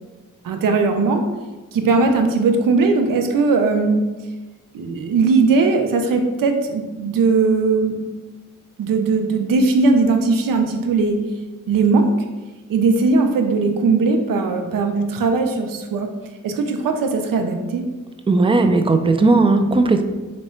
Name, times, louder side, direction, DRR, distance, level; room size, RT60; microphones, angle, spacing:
voice 1, 0.4-1.2 1.7-4.0 4.7-8.0 8.8-11.2 11.7-12.1 12.7-16.1 16.4-17.9, right 4 dB, 85° right, 5 dB, 0.5 m, -18 dB
voice 2, 18.3-20.0, right 3 dB, 15° right, 7 dB, 0.3 m, -16 dB
3.6 x 2.2 x 4.2 m, 1.2 s
cardioid pair, 60°, 32 cm